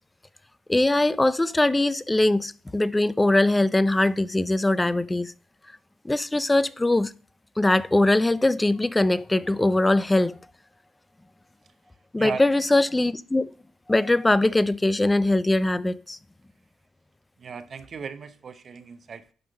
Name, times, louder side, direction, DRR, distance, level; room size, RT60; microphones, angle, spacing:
voice 1, 0.7-5.3 6.0-7.1 7.6-10.4 12.1-13.5 13.9-16.2, left 2 dB, 15° left, 0.4 m, -21 dB
voice 2, 17.4-19.3, right 5 dB, 45° right, 0.8 m, -36 dB
10.5 x 3.6 x 6.2 m
cardioid pair, 90°, 0 cm